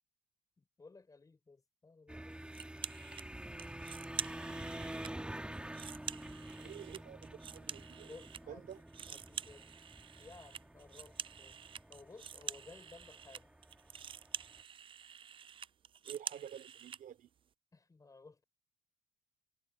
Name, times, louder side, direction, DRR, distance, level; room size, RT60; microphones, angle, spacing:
voice 1, 0.6-2.6 8.0-9.7 10.2-11.6 11.9-13.5 17.7-18.4, left 3 dB, 20° left, 4.7 m, -57 dB
sound 1, 2.1-14.6, right 1 dB, 5° right, 2.4 m, -48 dB
sound 2, 2.5-3.3 3.6-5.1 5.5-8.4 8.7-17.0, right 8 dB, 30° right, 0.4 m, -46 dB
voice 2, 6.6-8.1 8.5-8.8 16.0-17.3, right 9 dB, 55° right, 3.6 m, -49 dB
cardioid pair, 110°, 17 cm